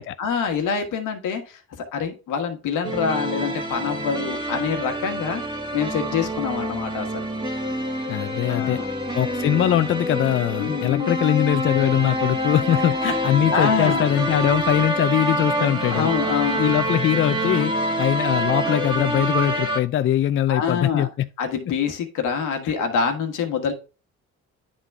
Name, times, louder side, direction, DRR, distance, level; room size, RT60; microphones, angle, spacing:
voice 1, 0.2-5.4 5.7-7.3 8.5-8.9 10.6-11.2 13.5-14.1 15.9-16.6 20.5-21.1 21.4-23.7, left 6 dB, 85° left, 1.4 m, -25 dB
sound 1, 2.8-19.8, right 1 dB, 15° right, 1.4 m, -26 dB
voice 2, 8.1-8.8 9.1-16.1 16.6-21.3 22.6-22.7, left 11 dB, 45° left, 0.4 m, -22 dB
9.6 x 3.7 x 3.4 m
cardioid pair, 90°, 30 cm